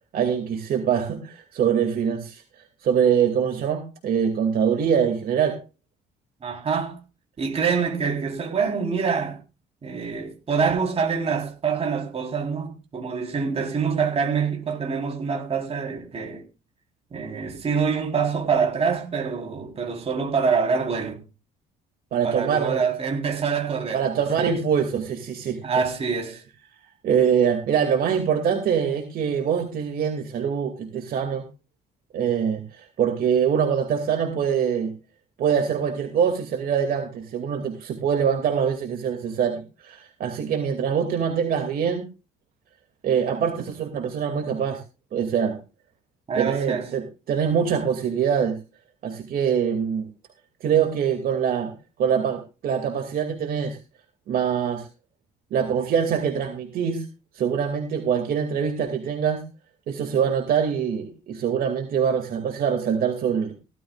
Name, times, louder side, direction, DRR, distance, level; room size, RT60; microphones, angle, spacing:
voice 1, 0.1-2.4 2.8-5.6 22.1-22.8 23.9-25.6 27.0-31.4 32.1-34.9 35.4-42.1 43.0-44.8 45.1-45.6 46.3-48.6 49.0-50.1 50.6-51.7 52.0-53.8 54.3-54.9 55.5-57.1 57.3-59.4 59.9-63.5, right 7 dB, 60° right, 2.5 m, -24 dB
voice 2, 6.4-7.0 7.4-9.4 9.8-16.4 17.1-21.2 22.2-24.0 24.4-24.5 25.6-26.4 46.3-46.9, right 5 dB, 35° right, 3.9 m, -25 dB
17.0 x 13.0 x 2.4 m
cardioid pair, 110°, 17 cm